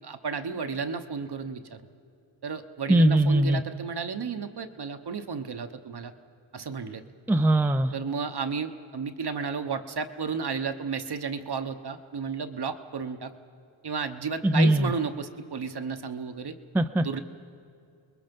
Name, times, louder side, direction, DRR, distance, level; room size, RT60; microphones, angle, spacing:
voice 1, 0.0-1.8 2.4-6.1 6.5-7.0 7.9-13.3 13.8-16.5 17.0-17.2, right 5 dB, 50° right, 8 dB, 1.0 m, -33 dB
voice 2, 2.9-3.6 7.3-7.9 14.4-14.9 16.7-17.0, right 1 dB, 5° right, 8 dB, 0.5 m, -21 dB
29.5 x 21.0 x 5.3 m, 2.4 s
wide cardioid pair, 115°, 49 cm